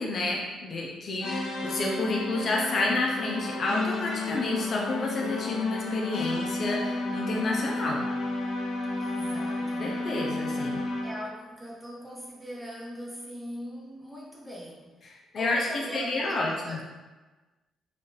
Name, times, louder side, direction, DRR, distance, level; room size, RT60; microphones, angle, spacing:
voice 1, 0.0-8.0 9.8-10.8 15.3-15.7 15.9-16.8, left 2 dB, 50° left, -1 dB, 0.7 m, -29 dB
sound 1, 1.2-11.3, left 2 dB, 80° left, 0.6 m, -32 dB
voice 2, 9.0-10.1 11.0-15.1 15.4-16.8, equal, 15° right, -4 dB, 1.1 m, -41 dB
4.0 x 2.7 x 3.4 m, 1.2 s
cardioid pair, 90°, 0 cm